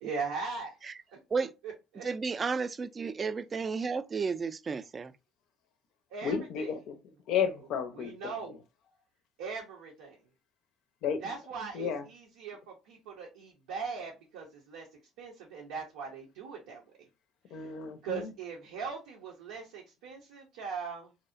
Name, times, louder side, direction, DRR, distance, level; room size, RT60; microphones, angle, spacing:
voice 1, 0.0-0.7 1.6-2.0 6.1-6.7 7.9-8.5 9.4-10.2 11.2-14.9 15.2-16.8 17.6-17.7 18.0-21.1, right 5 dB, 85° right, 0.6 m, -40 dB
voice 2, 2.0-5.1, right 5 dB, 35° right, 0.3 m, -32 dB
voice 3, 6.2-6.8 7.3-8.6 11.0-11.2 11.7-12.0 17.5-18.3, left 7 dB, 70° left, 0.5 m, -32 dB
2.5 x 2.0 x 2.4 m
supercardioid pair, 70°, 0 cm